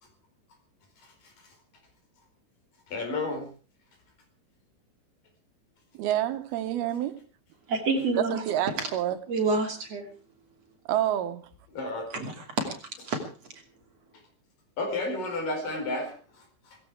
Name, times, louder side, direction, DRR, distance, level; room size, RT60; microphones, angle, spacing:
voice 1, 2.9-3.5 11.7-12.2 14.8-16.2, left 2 dB, 60° left, 6.1 m, -31 dB
voice 2, 5.9-7.2 8.2-9.2 10.9-11.4, right 11 dB, 85° right, 3.1 m, -28 dB
voice 3, 7.7-8.4 8.8-8.9 9.3-10.1 12.1-12.7 13.1-13.2, right 3 dB, 45° right, 3.7 m, -28 dB
18.0 x 16.0 x 4.8 m
omnidirectional pair, 4.4 m